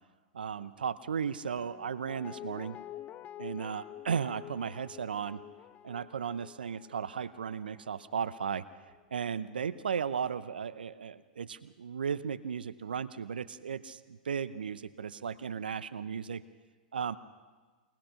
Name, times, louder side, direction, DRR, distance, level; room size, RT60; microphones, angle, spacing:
voice 1, 0.3-2.8 3.4-5.4 5.8-8.6 9.1-16.4 16.9-17.2, right 7 dB, 85° right, 14 dB, 0.7 m, -35 dB
Guitar, 1.6-8.6 8.9-9.0, left 12 dB, 30° left, 0.6 m, -48 dB
23.5 x 19.0 x 5.9 m, 1.4 s
hypercardioid pair, 105°, 5 cm